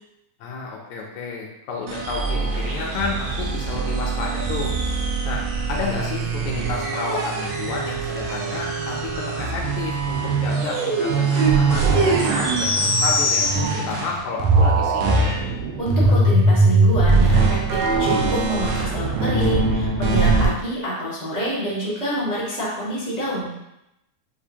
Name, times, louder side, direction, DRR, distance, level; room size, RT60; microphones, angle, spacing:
voice 1, 0.4-4.8 5.3-13.5 13.7-15.3, left 4 dB, 75° left, -1 dB, 1.8 m, -31 dB
sound 1, 1.9-14.1 14.4-20.5, right 3 dB, 80° right, 2.2 m, -21 dB
voice 2, 15.8-23.5, right 1 dB, 55° right, -9 dB, 0.4 m, -27 dB
6.7 x 2.6 x 2.8 m, 0.88 s
omnidirectional pair, 3.5 m